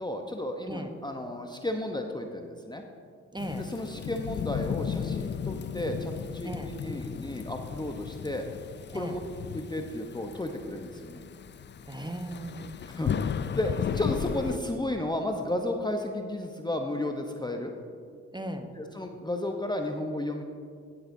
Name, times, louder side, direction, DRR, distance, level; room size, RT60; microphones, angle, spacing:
voice 1, 0.0-2.8 3.6-8.5 8.9-9.2 9.5-11.2 12.9-17.7 18.8-20.4, left 1 dB, 15° left, 4 dB, 0.8 m, -33 dB
voice 2, 3.3-3.7 6.4-6.7 8.9-9.2 11.9-12.7 18.3-18.7, right 1 dB, 15° right, 6 dB, 1.0 m, -37 dB
Thunderstorm / Rain, 3.4-14.6, left 7 dB, 35° left, 0.4 m, -35 dB
16.5 x 7.9 x 2.7 m, 2.2 s
hypercardioid pair, 45°, 34 cm